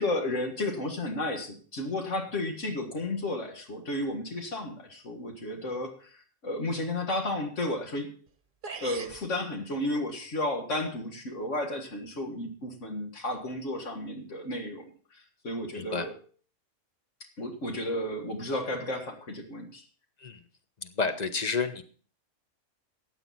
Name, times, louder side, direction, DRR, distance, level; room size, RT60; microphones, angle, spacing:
voice 1, 0.0-8.1 8.8-16.2 17.4-19.8, left 1 dB, 70° left, 3 dB, 2.1 m, -33 dB
sound 1, 8.3-8.4 8.6-9.2, right 5 dB, 45° right, 1.0 m, -39 dB
voice 2, 15.7-16.1 20.2-20.5 20.8-21.8, left 4 dB, 35° left, 9 dB, 1.1 m, -30 dB
15.5 x 9.1 x 4.1 m, 0.42 s
omnidirectional pair, 1.3 m